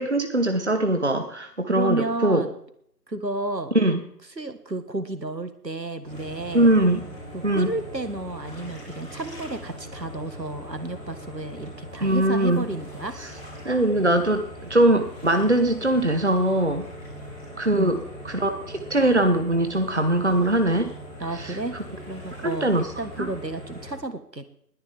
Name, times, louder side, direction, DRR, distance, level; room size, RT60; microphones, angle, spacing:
voice 1, 0.0-2.4 3.7-4.0 6.5-7.0 7.4-7.7 12.0-12.7 13.2-13.3 13.6-16.8 17.6-18.0 18.2-20.9 21.4-21.6 22.6-22.9 23.2-23.3, right 1 dB, 45° right, 8 dB, 1.2 m, -21 dB
voice 2, 1.7-2.5 3.1-3.7 4.4-6.7 7.3-13.2 17.7-18.0 21.2-24.5, right 2 dB, 85° right, 10 dB, 1.9 m, -32 dB
sound 1, 6.0-23.9, equal, 5° left, 3.0 m, -41 dB
20.5 x 10.0 x 3.6 m, 0.68 s
figure-of-eight pair, 170°, 50 cm